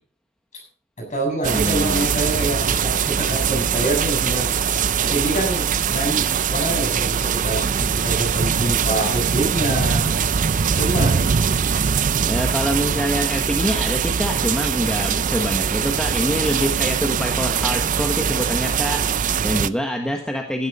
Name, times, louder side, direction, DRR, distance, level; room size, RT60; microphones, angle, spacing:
voice 1, 1.0-10.2 10.7-11.3, right 1 dB, 35° left, 1 dB, 7.0 m, -26 dB
sound 1, 1.4-19.7, right 7 dB, 40° right, 0.5 m, -22 dB
voice 2, 1.5-2.1 12.3-20.7, equal, 5° left, 2 dB, 1.3 m, -25 dB
16.0 x 11.0 x 4.2 m, 0.42 s
head